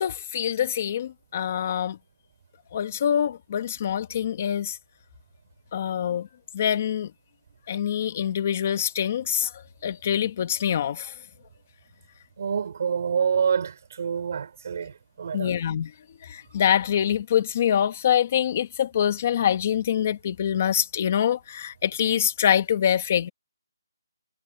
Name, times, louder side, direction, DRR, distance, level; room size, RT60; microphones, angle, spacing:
voice 1, 0.0-2.0 2.7-4.8 5.7-6.3 6.5-7.1 7.7-9.5 9.8-11.1 15.3-15.9 16.2-23.3, left 9 dB, 30° left, 1.4 m, -25 dB
voice 2, 12.4-15.5, right 7 dB, 40° right, 3.3 m, -27 dB
hypercardioid pair, 175°, 2 cm